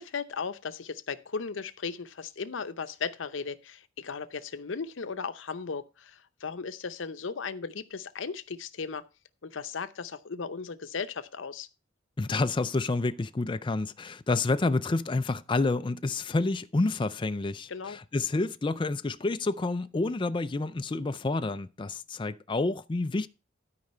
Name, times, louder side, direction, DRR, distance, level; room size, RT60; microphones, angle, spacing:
voice 1, 0.0-9.0 9.4-11.7 17.7-18.0, left 5 dB, 85° left, 0.7 m, -36 dB
voice 2, 12.2-23.3, left 3 dB, 25° left, 0.4 m, -29 dB
12.5 x 4.9 x 5.5 m
head